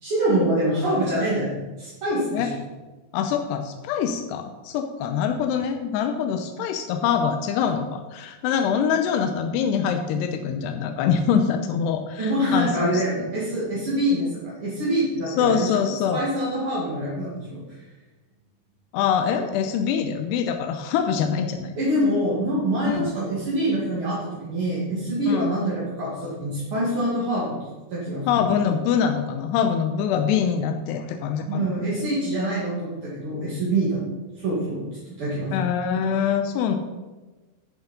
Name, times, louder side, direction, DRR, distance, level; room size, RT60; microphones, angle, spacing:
voice 1, 0.0-2.5 12.2-15.7 16.1-17.6 21.8-27.6 27.9-28.4 31.5-34.0 34.4-34.9 35.2-35.5, right 1 dB, 40° right, -7 dB, 2.3 m, -25 dB
voice 2, 3.1-13.0 15.3-16.2 18.9-21.7 22.9-23.1 25.3-25.6 28.3-31.7 35.5-36.8, left 7 dB, 90° left, 6 dB, 2.8 m, -24 dB
11.0 x 7.1 x 5.3 m, 1.2 s
omnidirectional pair, 4.9 m